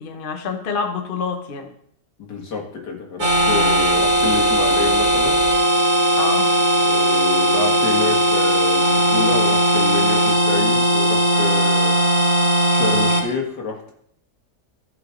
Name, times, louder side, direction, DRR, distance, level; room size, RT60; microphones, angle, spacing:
voice 1, 0.0-1.7 6.2-6.5, left 5 dB, 40° left, 4 dB, 1.0 m, -27 dB
voice 2, 2.2-5.4 6.9-12.0 12.7-13.9, left 5 dB, 75° left, 0 dB, 2.2 m, -28 dB
sound 1, 3.2-13.2, right 1 dB, 65° right, 2.2 m, -18 dB
15.0 x 5.0 x 3.9 m, 0.68 s
omnidirectional pair, 1.8 m